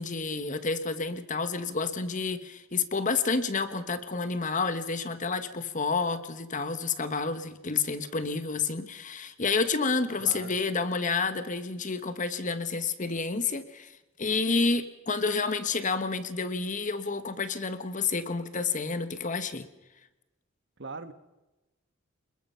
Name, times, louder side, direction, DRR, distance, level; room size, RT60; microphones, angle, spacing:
voice 1, 0.0-13.9 14.2-19.6, left 4 dB, 35° left, 11 dB, 1.3 m, -29 dB
voice 2, 10.2-10.6 20.8-21.1, right 3 dB, 55° right, 10 dB, 1.5 m, -40 dB
26.5 x 21.5 x 5.8 m, 1.0 s
head